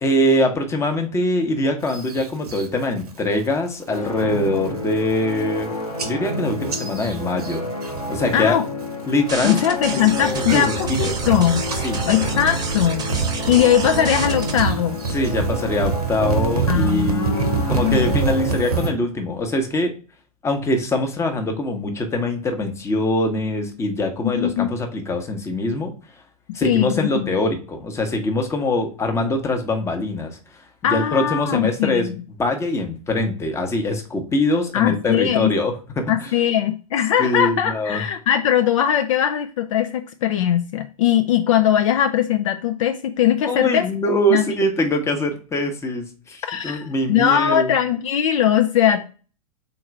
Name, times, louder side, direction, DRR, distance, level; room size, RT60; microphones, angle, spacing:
voice 1, 0.0-5.8 6.0-7.7 8.1-8.6 9.1-9.6 9.9-10.1 10.3-11.0 11.8-12.0 15.1-19.9 20.4-25.9 26.5-30.4 30.8-36.3 37.2-38.0 43.4-47.8, left 1 dB, 15° left, 4 dB, 0.9 m, -23 dB
sound 1, 1.9-2.7 3.1-3.5 3.8-4.2 4.7-4.8 5.0-5.6 6.0-8.5 8.8-9.3 9.8-18.9, right 5 dB, 80° right, 0.9 m, -26 dB
sound 2, 3.9-18.9, left 2 dB, 85° left, 1.1 m, -29 dB
voice 2, 8.3-8.6 9.4-11.6 12.1-13.0 13.5-15.0 16.7-18.2 24.2-24.7 26.6-27.3 30.8-32.1 34.7-35.5 36.1-43.9 44.3-44.4 46.5-49.0, left 10 dB, 55° left, 8 dB, 0.5 m, -20 dB
sound 3, 9.3-14.6, right 4 dB, 20° right, 0.9 m, -31 dB
3.9 x 2.9 x 4.5 m, 0.36 s
figure-of-eight pair, 100°, 20 cm